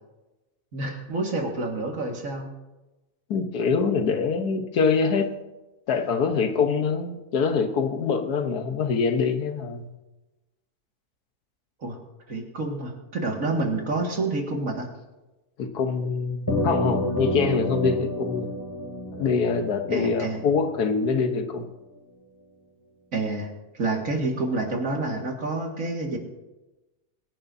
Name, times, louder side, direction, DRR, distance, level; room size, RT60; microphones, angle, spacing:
voice 1, 0.7-2.5 11.8-12.0 12.3-14.9 19.9-20.4 23.1-26.2, right 2 dB, 60° right, 1 dB, 2.4 m, -28 dB
voice 2, 3.3-5.3 5.9-9.9 15.6-18.5 19.1-21.7, left 5 dB, 90° left, 7 dB, 1.6 m, -24 dB
sound 1, 16.5-21.1, equal, 15° left, 2.7 m, -29 dB
24.0 x 11.0 x 2.7 m, 1.1 s
omnidirectional pair, 1.6 m